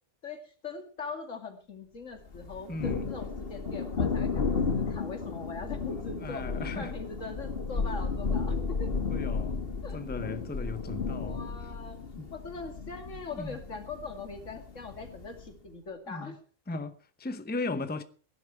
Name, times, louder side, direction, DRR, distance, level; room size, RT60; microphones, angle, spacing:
voice 1, 0.2-6.5 6.8-8.9 9.8-10.0 11.2-12.0 12.3-16.4, left 4 dB, 90° left, 2.7 m, -41 dB
Thunder, 2.3-15.5, left 4 dB, 50° left, 1.8 m, -33 dB
voice 2, 2.7-3.1 6.2-6.9 9.1-9.6 9.9-11.5 12.2-12.3 13.3-13.6 16.1-16.4 16.7-18.0, left 3 dB, 10° left, 0.7 m, -37 dB
17.5 x 11.0 x 4.7 m
omnidirectional pair, 1.3 m